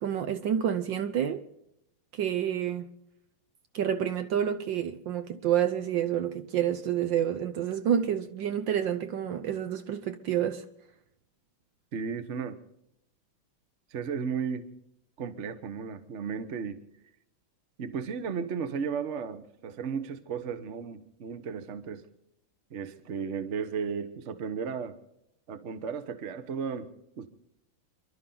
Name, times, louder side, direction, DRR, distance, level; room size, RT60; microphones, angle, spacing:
voice 1, 0.0-1.4 2.1-2.9 3.7-10.6, right 9 dB, 65° right, 1.4 m, -28 dB
voice 2, 11.9-12.6 13.9-14.7 15.2-16.8 17.8-22.0 22.7-25.0 25.5-27.3, right 6 dB, 45° right, 1.1 m, -34 dB
28.5 x 12.0 x 3.9 m
omnidirectional pair, 2.4 m